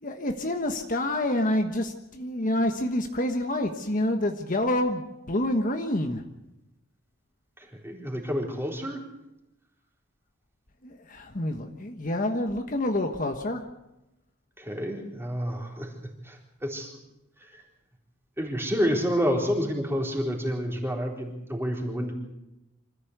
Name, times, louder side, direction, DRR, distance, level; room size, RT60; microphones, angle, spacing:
voice 1, 0.0-6.2 10.8-13.6, left 1 dB, 40° left, 5 dB, 1.4 m, -27 dB
voice 2, 7.6-9.0 14.6-15.9 16.2-16.9 17.4-17.6 18.4-22.1, equal, 10° right, 0 dB, 3.9 m, -29 dB
25.5 x 14.5 x 8.1 m, 0.95 s
head